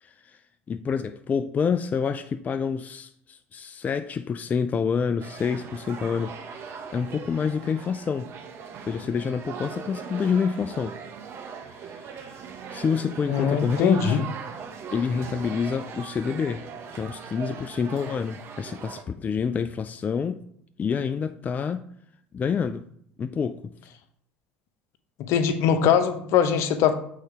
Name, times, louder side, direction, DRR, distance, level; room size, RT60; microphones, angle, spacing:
voice 1, 0.0-0.4 0.7-6.4 6.7-8.3 8.8-11.0 11.8-12.4 12.7-14.3 14.9-16.7 16.9-20.4 20.8-21.8 22.3-22.9 23.2-23.7, left 6 dB, 30° left, 0.4 m, -28 dB
sound 1, 5.2-19.0, right 6 dB, 45° right, 1.0 m, -40 dB
voice 2, 13.3-14.2 25.3-26.9, left 8 dB, 60° left, 0.8 m, -21 dB
6.4 x 4.0 x 4.8 m
hypercardioid pair, 75°, 6 cm